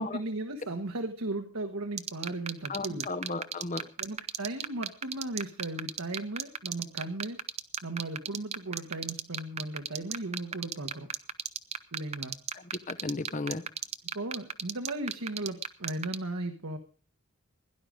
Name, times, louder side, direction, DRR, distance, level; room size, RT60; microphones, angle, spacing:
voice 1, 0.0-3.1 4.0-7.4 7.8-11.1 11.9-12.3 14.1-16.8, right 2 dB, 90° right, 1.5 m, -36 dB
sound 1, 2.0-16.2, right 8 dB, 30° right, 0.8 m, -32 dB
voice 2, 2.7-3.9 12.9-13.6, left 2 dB, 35° left, 1.0 m, -34 dB
17.0 x 11.0 x 5.1 m
head